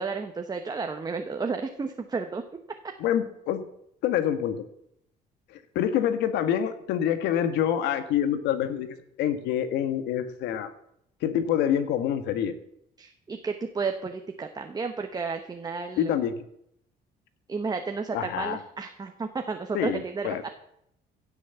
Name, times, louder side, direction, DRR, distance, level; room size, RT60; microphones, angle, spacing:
voice 1, 0.0-2.4 13.0-16.1 17.5-20.4, right 4 dB, 25° right, 5 dB, 1.1 m, -32 dB
voice 2, 3.0-3.6 4.0-4.6 5.5-10.7 11.2-12.5 16.0-16.3 18.1-18.6 19.7-20.4, left 9 dB, 85° left, 11 dB, 1.5 m, -26 dB
16.0 x 6.4 x 8.0 m, 0.74 s
cardioid pair, 110°, 17 cm